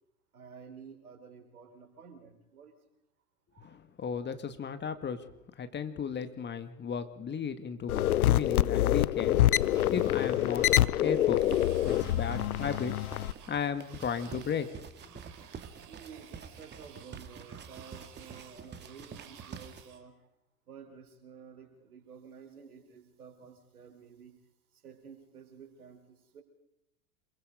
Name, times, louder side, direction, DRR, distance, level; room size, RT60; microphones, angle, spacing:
voice 1, 0.3-2.8 3.5-3.7 11.8-12.9 15.8-20.3 20.7-24.4 24.7-26.4, right 6 dB, 75° right, 6 dB, 4.8 m, -51 dB
voice 2, 3.6-5.3 5.6-9.4 9.9-10.7 11.0-11.4 11.8-12.9 13.5-14.7 15.0-15.2, left 7 dB, 25° left, 9 dB, 2.0 m, -35 dB
sound 1, 7.9-13.3, left 13 dB, 70° left, 0.8 m, -26 dB
sound 2, 9.7-20.0, right 9 dB, 40° right, 4.3 m, -54 dB
sound 3, 11.4-19.8, right 6 dB, 25° right, 2.1 m, -47 dB
27.0 x 23.0 x 5.1 m, 0.81 s
figure-of-eight pair, 90°, 45 cm